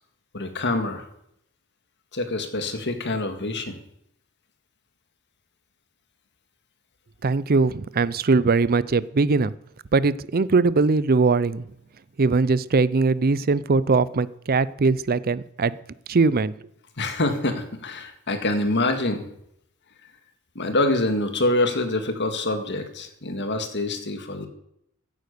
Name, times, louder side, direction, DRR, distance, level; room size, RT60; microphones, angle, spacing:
voice 1, 0.3-1.1 2.1-3.8 17.0-19.2 20.6-24.5, left 2 dB, 50° left, 7 dB, 1.9 m, -25 dB
voice 2, 7.2-9.5 9.9-11.6 12.2-15.8 16.1-16.5, right 4 dB, 40° right, 19 dB, 0.5 m, -21 dB
16.0 x 9.3 x 6.8 m, 0.76 s
head